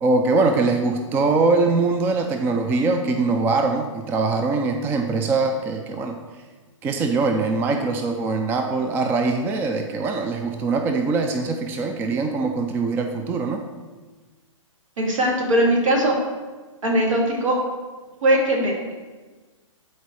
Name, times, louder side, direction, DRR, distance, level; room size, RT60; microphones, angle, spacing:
voice 1, 0.0-6.2 6.8-13.6, right 3 dB, 10° right, 5 dB, 0.3 m, -22 dB
voice 2, 15.0-16.2 16.8-17.6 18.2-18.9, right 1 dB, 70° right, -1 dB, 2.1 m, -20 dB
11.5 x 4.2 x 3.2 m, 1.3 s
hypercardioid pair, 130°, 17 cm